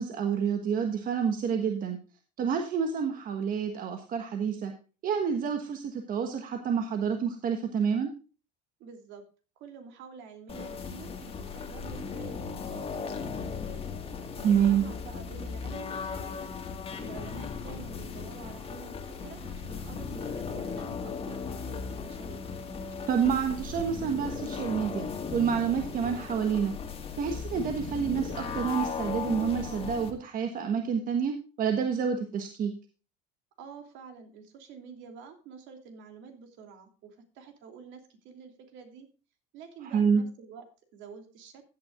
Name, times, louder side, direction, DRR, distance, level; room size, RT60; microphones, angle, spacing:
voice 1, 0.0-2.0 2.4-4.7 5.0-8.1 14.4-14.8 23.1-25.1 25.3-26.7 27.2-32.7 39.9-40.2, right 7 dB, 40° right, 5 dB, 1.4 m, -28 dB
voice 2, 8.8-9.2 9.6-13.9 14.3-16.5 17.0-22.5 33.6-39.1 39.5-40.6 40.9-41.6, right 6 dB, 65° right, 5 dB, 3.0 m, -48 dB
sound 1, 10.5-30.1, left 5 dB, 25° left, 1.8 m, -37 dB
15.5 x 9.2 x 2.5 m, 0.34 s
cardioid pair, 135°, 21 cm